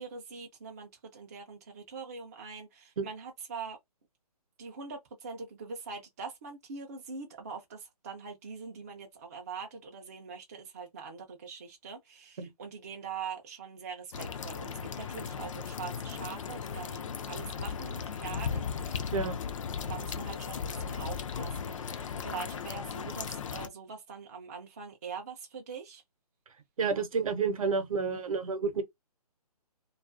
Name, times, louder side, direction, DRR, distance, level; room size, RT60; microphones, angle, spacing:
voice 1, 0.0-3.8 4.6-19.1 19.9-26.0, right 5 dB, 25° right, 0.4 m, -43 dB
sound 1, 14.1-23.7, left 6 dB, 55° left, 0.4 m, -36 dB
voice 2, 26.8-28.8, right 5 dB, 60° right, 0.7 m, -30 dB
2.3 x 2.2 x 2.4 m
hypercardioid pair, 155°, 20 cm